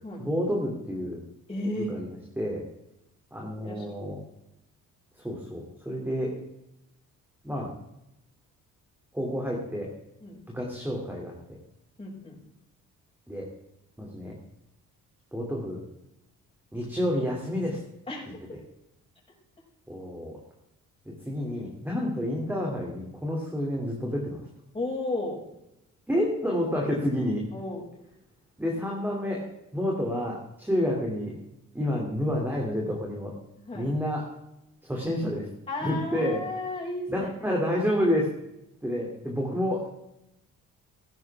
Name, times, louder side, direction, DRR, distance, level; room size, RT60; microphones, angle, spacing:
voice 1, 0.2-1.2 1.8-2.6 3.3-4.2 5.2-6.3 7.4-7.7 9.1-9.9 10.5-11.3 13.3-13.5 14.0-14.4 15.3-15.8 16.7-17.8 19.9-20.4 21.2-24.4 26.1-27.4 28.6-29.5 29.7-31.4 31.7-33.3 33.7-34.3 34.8-35.5 35.8-36.4 37.1-38.3 38.8-39.9, equal, 5° right, -2 dB, 3.0 m, -29 dB
voice 2, 1.5-1.9 3.6-3.9 10.2-10.4 12.0-12.3 18.1-18.2 24.7-25.4 27.5-27.9 33.7-33.9 35.7-37.5, left 2 dB, 20° left, -4 dB, 6.3 m, -33 dB
15.0 x 12.0 x 3.7 m, 0.85 s
cardioid pair, 90°, 30 cm